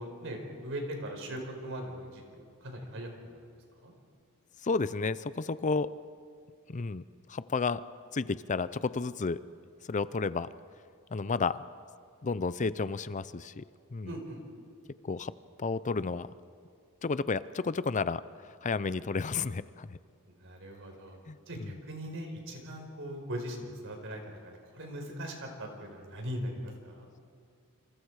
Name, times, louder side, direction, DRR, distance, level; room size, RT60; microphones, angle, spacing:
voice 1, 0.0-3.4 3.8-3.9 14.0-14.4 20.4-21.2 21.5-27.1, equal, 60° right, 3 dB, 4.7 m, -40 dB
voice 2, 4.6-5.9 6.7-7.0 7.3-7.8 8.1-9.4 9.9-10.5 11.1-11.6 12.2-13.6 13.9-14.1 15.0-15.3 15.6-16.3 17.0-18.2 18.6-20.0 21.3-21.4, left 4 dB, 35° left, 16 dB, 0.5 m, -31 dB
28.0 x 27.0 x 4.8 m, 2.2 s
head